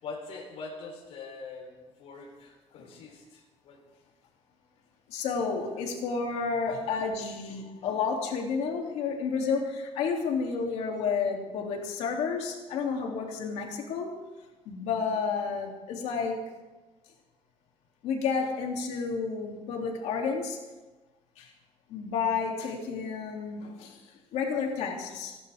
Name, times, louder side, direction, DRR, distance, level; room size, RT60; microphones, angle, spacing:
voice 1, 0.0-3.8 6.5-6.8 7.6-7.8 17.0-17.1 23.6-23.8, left 4 dB, 65° left, 1 dB, 4.1 m, -44 dB
voice 2, 5.1-14.2 14.6-16.4 18.0-20.6 21.4-21.5 21.9-25.4, left 5 dB, 85° left, 1 dB, 2.9 m, -31 dB
29.5 x 11.5 x 3.6 m, 1.1 s
cardioid pair, 170°, 11 cm